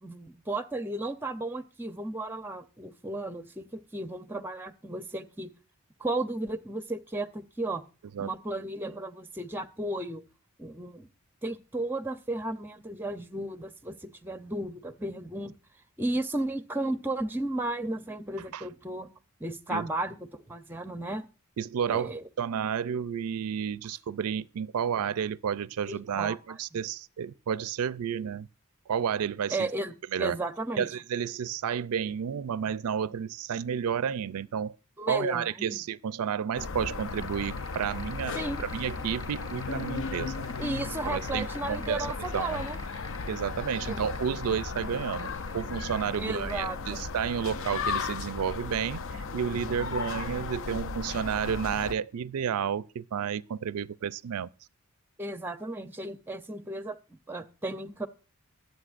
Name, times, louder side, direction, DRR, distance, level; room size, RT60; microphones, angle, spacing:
voice 1, 0.0-5.5 6.0-7.8 8.2-10.2 10.6-11.1 11.4-15.6 16.0-19.1 19.4-21.3 21.9-22.2 25.9-26.4 29.5-30.9 35.0-35.8 38.3-38.6 40.6-42.8 43.9-44.1 46.2-47.0 55.2-57.0 57.3-58.1, right 2 dB, 10° right, 0.6 m, -34 dB
voice 2, 21.6-28.5 28.9-29.7 30.1-30.4 30.8-34.8 35.1-40.5 41.1-42.1 42.3-42.6 43.3-54.5, right 7 dB, 85° right, 0.4 m, -31 dB
sound 1, 36.6-51.9, left 4 dB, 60° left, 0.6 m, -35 dB
sound 2, 36.6-46.7, equal, 20° left, 3.0 m, -50 dB
21.5 x 8.1 x 2.5 m
head